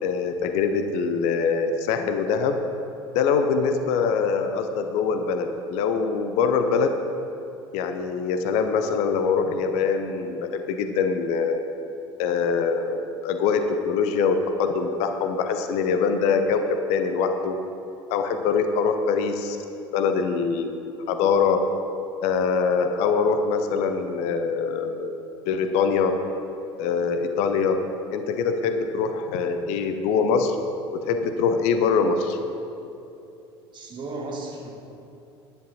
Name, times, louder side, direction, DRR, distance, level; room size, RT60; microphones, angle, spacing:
voice 1, 0.0-2.6 3.1-7.0 7.7-11.6 12.2-17.6 18.1-19.6 19.9-21.6 22.2-25.1 25.5-26.2 26.8-27.8 28.1-30.6 30.9-32.4, left 5 dB, 55° left, 7 dB, 0.8 m, -23 dB
voice 2, 33.7-34.7, right 2 dB, 35° right, 1 dB, 1.9 m, -34 dB
10.0 x 10.0 x 4.2 m, 2.8 s
figure-of-eight pair, 65°, 13 cm